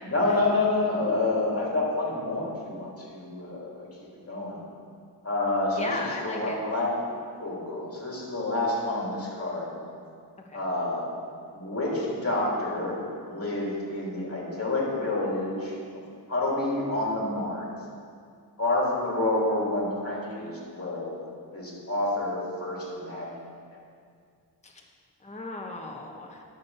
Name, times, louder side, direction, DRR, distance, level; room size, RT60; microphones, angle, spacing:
voice 1, 0.0-3.9 4.3-4.6 5.2-6.9 7.4-9.7 10.5-11.1 11.5-16.0 16.3-17.6 18.6-21.2 21.5-23.4, left 2 dB, 35° left, -4 dB, 2.9 m, -28 dB
voice 2, 5.8-6.6 10.5-10.6 24.6-24.7 25.2-26.4, left 2 dB, 15° left, 0 dB, 1.0 m, -36 dB
10.5 x 7.3 x 5.6 m, 2.3 s
wide cardioid pair, 95°, 41 cm